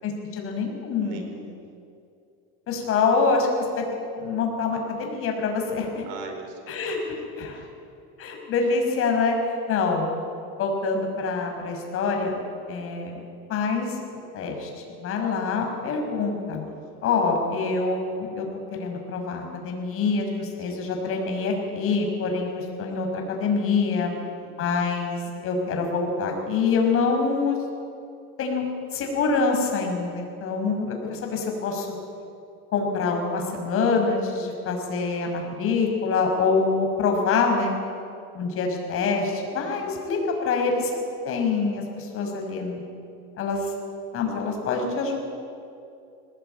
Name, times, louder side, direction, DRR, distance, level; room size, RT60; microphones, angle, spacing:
voice 1, 0.0-1.5 2.7-3.8 4.1-6.1 6.7-7.0 7.4-7.6 8.2-9.4 9.7-10.1 10.6-12.3 12.7-13.1 13.5-14.0 14.3-16.6 17.0-18.5 18.7-24.1 24.6-27.6 28.4-28.7 28.9-31.9 32.7-37.8 38.3-40.9 41.2-42.8 43.4-43.7 44.1-45.2, left 4 dB, 45° left, 2 dB, 5.8 m, -25 dB
voice 2, 1.0-1.6 6.1-7.6 16.7-17.1 20.6-21.0 23.9-24.5 39.5-40.0, right 4 dB, 80° right, 5 dB, 4.8 m, -44 dB
22.5 x 19.0 x 9.3 m, 2.5 s
cardioid pair, 140°, 30 cm